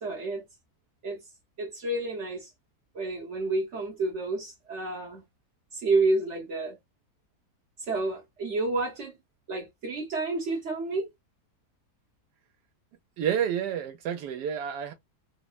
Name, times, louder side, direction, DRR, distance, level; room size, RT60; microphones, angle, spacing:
voice 1, 0.0-0.4 1.0-1.2 1.6-2.5 2.9-5.2 5.7-6.8 7.8-9.2 9.5-11.1, right 2 dB, 60° right, 0.8 m, -29 dB
voice 2, 13.2-14.9, right 9 dB, 80° right, 1.2 m, -29 dB
3.2 x 2.0 x 2.3 m
omnidirectional pair, 1.8 m